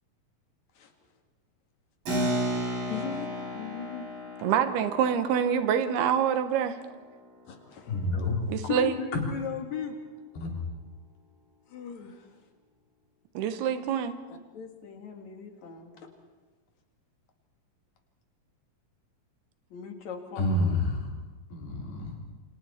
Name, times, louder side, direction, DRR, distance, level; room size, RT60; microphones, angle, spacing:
Keyboard (musical), 2.1-8.1, equal, 65° right, 7.6 m, -34 dB
voice 1, 2.5-4.1 7.5-8.1 8.6-10.0 11.7-12.3 13.7-13.8 14.3-15.9 19.7-20.7, left 7 dB, 55° left, 4 dB, 3.0 m, -38 dB
voice 2, 4.4-6.8 8.5-8.9 13.3-14.2, right 8 dB, 85° right, 10 dB, 3.2 m, -26 dB
voice 3, 7.9-8.4 10.4-10.5 20.4-21.1 21.5-22.2, left 2 dB, 90° left, -1 dB, 5.8 m, -28 dB
28.5 x 25.5 x 4.4 m, 1.3 s
omnidirectional pair, 4.4 m